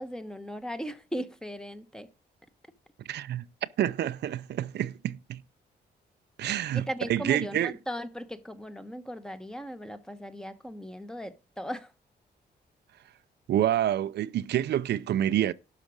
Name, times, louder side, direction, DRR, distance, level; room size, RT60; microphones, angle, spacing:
voice 1, 0.0-2.1 6.7-11.9, equal, 5° left, 1.0 m, -38 dB
voice 2, 3.1-3.5 3.8-5.4 6.4-7.7 13.5-15.5, right 11 dB, 75° right, 0.6 m, -28 dB
12.0 x 5.0 x 6.1 m
cardioid pair, 125°, 17 cm